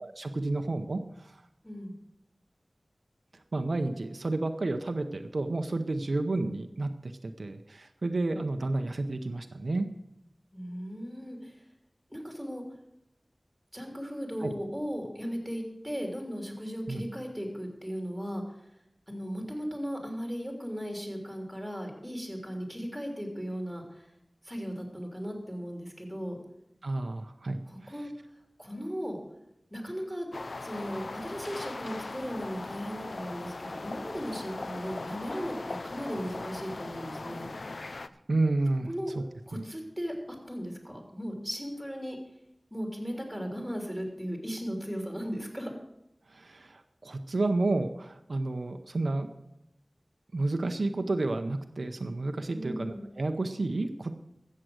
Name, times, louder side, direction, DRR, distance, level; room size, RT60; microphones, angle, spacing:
voice 1, 0.0-1.4 3.5-9.9 14.4-14.5 16.9-17.0 26.8-27.9 38.3-38.9 39.2-39.3 39.5-39.6 46.3-49.3 50.3-54.2, right 2 dB, 75° right, 7 dB, 0.7 m, -31 dB
voice 2, 1.6-1.9 10.5-11.6 12.1-12.6 13.7-18.6 19.1-24.1 24.4-26.4 27.7-28.1 28.6-29.2 29.7-30.3 30.6-37.5 38.9-39.1 39.5-40.1 40.4-42.2 42.7-45.7 52.5-53.0, equal, ahead, 2 dB, 3.3 m, -37 dB
sound 1, 30.3-38.1, left 3 dB, 75° left, 0.4 m, -39 dB
14.0 x 7.6 x 6.4 m, 0.84 s
wide cardioid pair, 60°, 0 cm